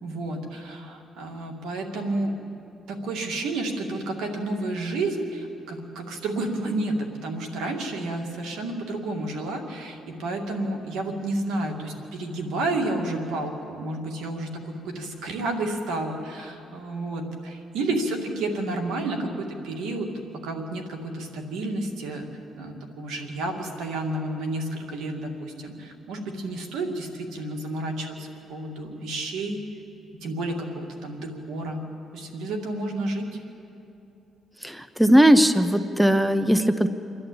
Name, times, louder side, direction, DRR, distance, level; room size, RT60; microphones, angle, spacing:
voice 1, 0.0-2.3 2.9-22.3 22.6-29.6 30.2-31.8 32.1-33.3, right 2 dB, 85° right, 3 dB, 2.4 m, -31 dB
voice 2, 34.6-36.9, equal, 5° right, 11 dB, 0.8 m, -18 dB
28.5 x 11.0 x 8.7 m, 2.7 s
cardioid pair, 90°, 0 cm